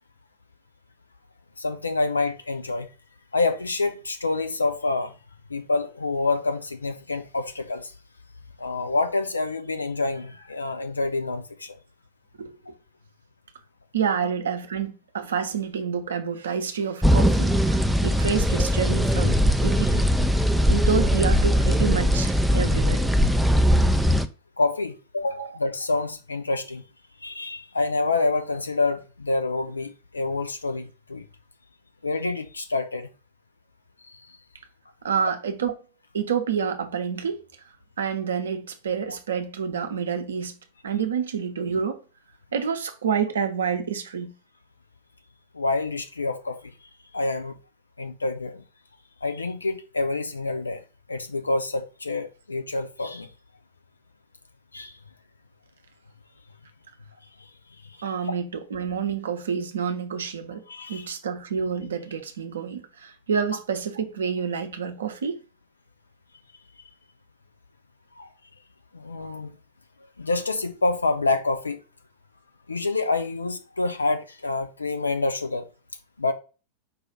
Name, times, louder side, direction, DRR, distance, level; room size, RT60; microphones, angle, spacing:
voice 1, 1.6-2.9 3.3-5.1 5.5-7.9 8.6-11.8 24.6-26.8 27.2-31.2 32.0-33.1 34.1-34.2 45.5-46.7 47.1-47.6 48.0-48.6 49.2-50.8 51.1-53.3 54.7-55.0 60.7-61.1 68.2-68.3 68.9-69.5 70.2-71.8 72.7-75.7 76.2-76.3, left 3 dB, 80° left, 0.5 m, -27 dB
voice 2, 13.9-20.1 20.7-23.0 25.4-25.5 35.0-35.7 36.1-37.4 38.0-40.5 40.8-42.0 42.5-44.3 58.0-60.6 60.9-65.4, right 6 dB, 65° right, 0.6 m, -28 dB
sound 1, 17.0-24.2, equal, 5° right, 0.3 m, -20 dB
4.9 x 2.4 x 4.5 m
figure-of-eight pair, 90°, 0 cm